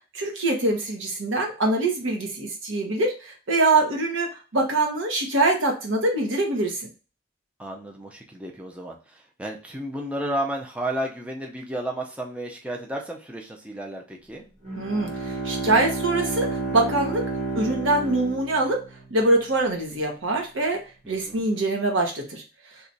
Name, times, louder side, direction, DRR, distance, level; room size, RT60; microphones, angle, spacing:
voice 1, 0.1-6.9 14.8-17.2 17.5-18.8 19.1-20.8 21.1-22.4, right 2 dB, 85° right, 1 dB, 1.0 m, -24 dB
voice 2, 7.6-14.4 21.0-21.5, right 1 dB, 5° right, 0 dB, 0.5 m, -32 dB
Bowed string instrument, 14.6-19.2, right 3 dB, 40° right, 1.2 m, -31 dB
2.9 x 2.4 x 4.0 m, 0.33 s
head